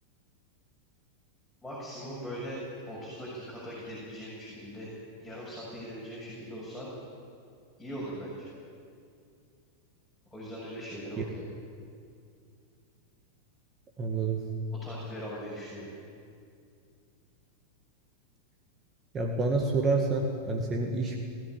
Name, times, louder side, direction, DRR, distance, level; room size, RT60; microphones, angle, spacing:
voice 1, 1.6-4.9 5.2-6.9 7.8-8.5 10.3-11.2 14.7-15.9, equal, 5° left, -8 dB, 6.8 m, -40 dB
voice 2, 14.0-14.4 19.1-21.2, right 3 dB, 25° right, 1 dB, 2.0 m, -28 dB
20.5 x 14.0 x 9.1 m, 2.3 s
figure-of-eight pair, 90°, 0 cm